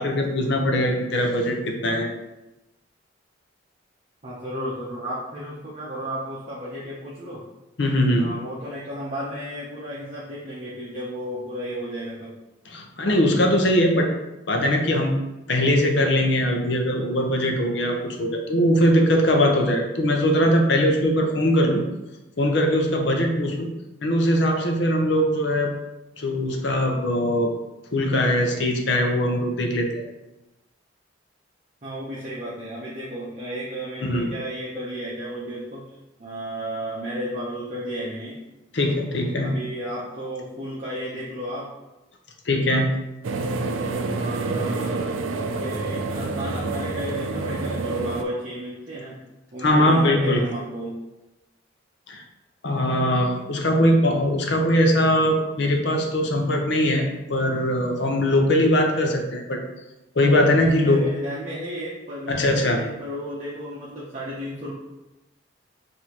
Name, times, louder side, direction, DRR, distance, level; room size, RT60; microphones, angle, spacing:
voice 1, 0.0-2.1 7.8-8.3 12.7-14.1 14.5-15.2 15.5-21.8 22.4-23.7 24.0-25.7 26.2-27.5 27.9-30.0 34.0-34.3 38.7-39.5 42.5-42.9 49.6-50.4 52.1-52.2 52.6-59.6 60.2-61.0 62.3-62.8, left 1 dB, 60° left, 3 dB, 0.7 m, -21 dB
voice 2, 4.2-7.4 8.2-12.3 31.8-35.9 36.2-38.4 39.4-41.7 44.0-45.2 45.6-49.2 49.5-51.0 60.5-64.7, equal, 35° right, -7 dB, 0.7 m, -33 dB
sound 1, 43.2-48.2, right 3 dB, 85° right, 0.4 m, -28 dB
6.2 x 2.7 x 2.9 m, 1.0 s
head